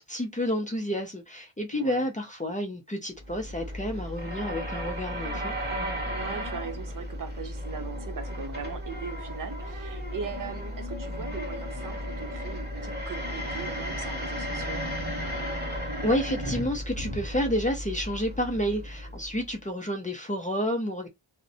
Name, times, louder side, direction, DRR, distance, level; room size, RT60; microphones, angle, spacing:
voice 1, 0.0-5.5 16.0-21.1, equal, 15° left, 0.5 m, -30 dB
voice 2, 1.7-2.1 6.0-14.8, right 6 dB, 40° right, 0.6 m, -40 dB
sound 1, 3.2-19.5, equal, 20° right, 0.9 m, -34 dB
2.5 x 2.1 x 2.6 m
wide cardioid pair, 170°, 49 cm